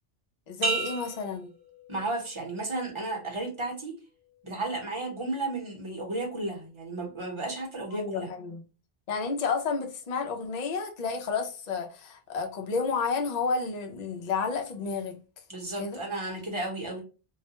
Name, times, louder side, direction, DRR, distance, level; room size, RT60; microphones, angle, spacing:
voice 1, 0.5-1.5 7.9-8.6 9.1-15.2 15.8-16.0, left 4 dB, 55° left, 0.5 m, -31 dB
sound 1, 0.6-2.4 2.9-3.4, right 3 dB, 55° right, 1.1 m, -33 dB
voice 2, 1.9-4.0 4.4-8.3 15.5-17.0, right 2 dB, 30° right, 0.8 m, -33 dB
2.3 x 2.1 x 2.8 m
omnidirectional pair, 1.1 m